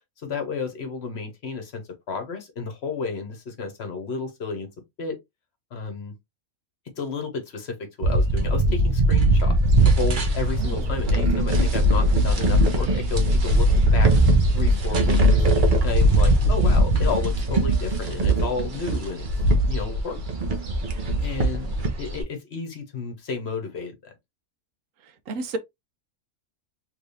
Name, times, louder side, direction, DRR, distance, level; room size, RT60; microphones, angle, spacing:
voice 1, 0.2-4.7 5.0-5.2 5.7-6.2 7.0-9.6 9.8-14.1 14.5-15.5 15.8-19.3 19.7-20.2 21.2-24.1, left 4 dB, 50° left, 1.1 m, -32 dB
sound 1, 8.0-22.2, right 1 dB, 45° right, 0.8 m, -20 dB
voice 2, 10.6-10.9 25.0-25.6, right 3 dB, 70° right, 1.0 m, -32 dB
3.3 x 3.1 x 2.6 m
omnidirectional pair, 1.5 m